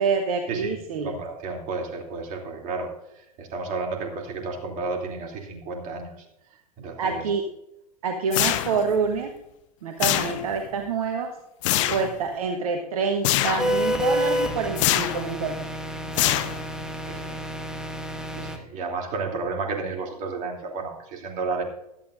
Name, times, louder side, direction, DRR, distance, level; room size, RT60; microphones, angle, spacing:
voice 1, 0.0-1.1 7.0-7.4 8.0-9.3 9.8-11.3 11.9-15.6, right 5 dB, 65° right, 4 dB, 1.2 m, -26 dB
voice 2, 1.0-2.9 3.4-6.1 6.8-7.3 11.7-12.0 16.0-16.6 17.1-17.4 18.4-21.6, right 3 dB, 40° right, 2 dB, 2.9 m, -32 dB
sound 1, 8.3-9.0 10.0-10.7 11.6-12.1 13.2-13.8 14.8-15.3 16.1-16.8, left 15 dB, 50° left, 0.7 m, -24 dB
sound 2, 13.6-18.6, equal, 5° right, 1.4 m, -29 dB
16.0 x 12.0 x 2.6 m, 0.87 s
figure-of-eight pair, 90°, 20 cm